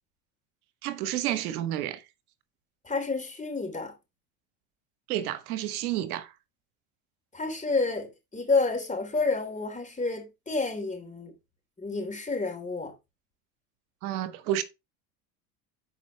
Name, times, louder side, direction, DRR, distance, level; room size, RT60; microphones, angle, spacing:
voice 1, 0.8-2.0 5.1-6.3 14.0-14.6, right 12 dB, 85° right, 1.0 m, -30 dB
voice 2, 2.8-3.9 7.3-11.3 11.8-12.9, left 3 dB, 15° left, 3.6 m, -29 dB
12.5 x 5.0 x 3.1 m
hypercardioid pair, 80°, 43 cm